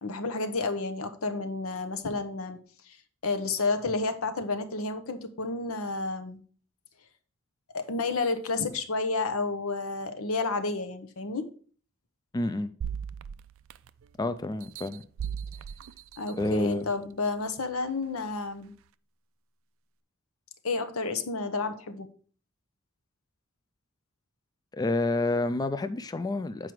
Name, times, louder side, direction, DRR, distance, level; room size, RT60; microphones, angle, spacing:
voice 1, 0.0-2.6 2.8-3.0 3.2-6.4 7.7-11.5 16.2-18.7 20.6-22.1, left 3 dB, 85° left, 0.9 m, -31 dB
voice 2, 12.3-12.7 14.2-15.0 16.3-16.9 24.7-26.7, left 2 dB, 20° left, 0.3 m, -29 dB
sound 1, 12.8-14.1 14.6-16.7 17.3-17.4, right 7 dB, 65° right, 0.3 m, -38 dB
7.6 x 4.8 x 4.7 m
head